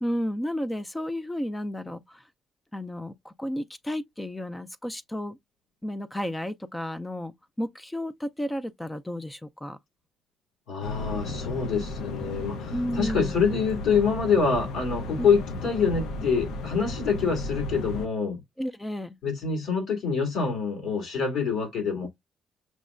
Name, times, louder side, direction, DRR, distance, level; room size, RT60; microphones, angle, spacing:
voice 1, 0.0-2.2 2.7-5.4 5.8-9.8 12.7-13.3 18.6-19.2, equal, 10° left, 0.4 m, -32 dB
voice 2, 10.7-18.4 19.2-22.1, left 5 dB, 75° left, 2.2 m, -26 dB
sound 1, 10.8-18.1, left 2 dB, 90° left, 0.6 m, -34 dB
6.2 x 2.1 x 2.4 m
cardioid pair, 90°, 0 cm